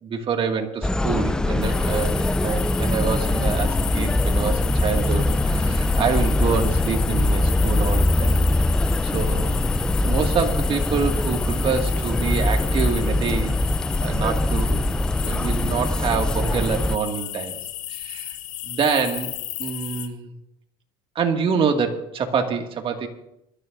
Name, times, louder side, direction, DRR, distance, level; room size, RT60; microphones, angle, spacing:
voice 1, 0.0-8.4 9.0-9.6 10.0-13.5 14.0-14.8 15.2-17.6 17.9-18.4 18.6-19.3 19.6-20.3 21.2-23.1, right 5 dB, 40° right, 3 dB, 2.1 m, -26 dB
sound 1, 0.8-17.0, left 1 dB, 5° left, 0.4 m, -22 dB
sound 2, 1.6-20.1, left 14 dB, 65° left, 1.1 m, -34 dB
23.0 x 13.0 x 2.6 m, 0.82 s
supercardioid pair, 100°, 14 cm